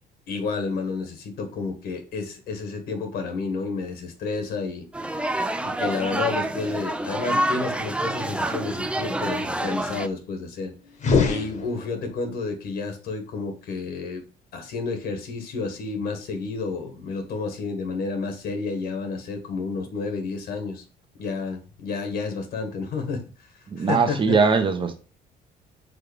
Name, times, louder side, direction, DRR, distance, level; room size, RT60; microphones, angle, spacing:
voice 1, 0.3-4.8 5.6-10.7 11.2-14.2 14.5-20.8 21.2-23.2 23.8-24.4, left 4 dB, 70° left, 1.5 m, -30 dB
sound 1, 4.9-10.1, right 1 dB, 5° right, 0.4 m, -27 dB
sound 2, 10.9-12.3, left 5 dB, 45° left, 1.2 m, -24 dB
voice 2, 23.7-24.9, right 5 dB, 30° right, 0.9 m, -21 dB
4.8 x 3.7 x 5.1 m
cardioid pair, 110°, 17 cm